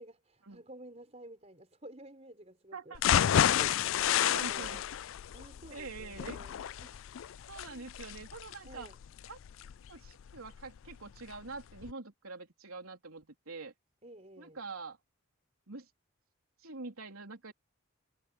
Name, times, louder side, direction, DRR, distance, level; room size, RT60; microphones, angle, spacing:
voice 1, 0.0-3.0 3.5-4.2 4.5-4.8 5.3-6.5 6.8-7.0 7.7-7.9 8.7-9.0 14.0-14.6, right 1 dB, 30° right, 4.9 m, -52 dB
sound 1, 2.9-10.9 11.3-11.4 11.8-11.9, left 10 dB, 65° left, 0.3 m, -30 dB
voice 2, 4.2-4.8 5.7-6.4 7.5-8.9 9.3-9.4 9.9-13.7 14.4-15.0 15.7-15.9 16.6-17.5, right 4 dB, 80° right, 3.5 m, -45 dB
head